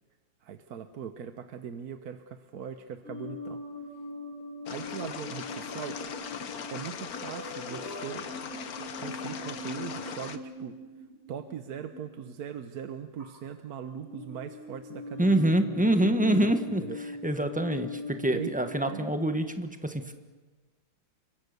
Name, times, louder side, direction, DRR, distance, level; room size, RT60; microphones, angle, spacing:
voice 1, 0.4-3.6 4.7-6.0 6.6-8.3 9.0-10.8 11.3-16.5 16.8-17.0 18.3-18.5 18.9-19.1, right 8 dB, 60° right, 9 dB, 1.3 m, -39 dB
sound 1, 3.0-12.4 13.2-13.5 13.9-19.5, left 3 dB, 30° right, 7.3 m, -42 dB
sound 2, 4.7-10.4, left 7 dB, 55° left, 1.5 m, -39 dB
voice 2, 15.2-16.8 17.2-20.1, right 1 dB, 5° right, 7 dB, 1.1 m, -26 dB
28.0 x 24.0 x 6.7 m, 1.3 s
omnidirectional pair, 2.1 m